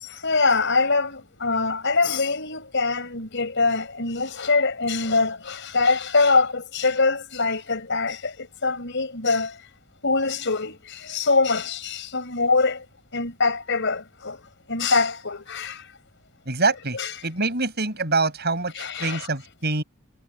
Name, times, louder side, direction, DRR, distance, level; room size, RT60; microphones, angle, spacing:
voice 1, 0.0-9.6 10.0-12.9 13.1-14.4 14.7-15.9 16.9-17.1 18.8-19.3, left 4 dB, 60° left, 5.6 m, -23 dB
voice 2, 16.5-17.0 17.2-19.8, right 3 dB, 50° right, 7.8 m, -25 dB
head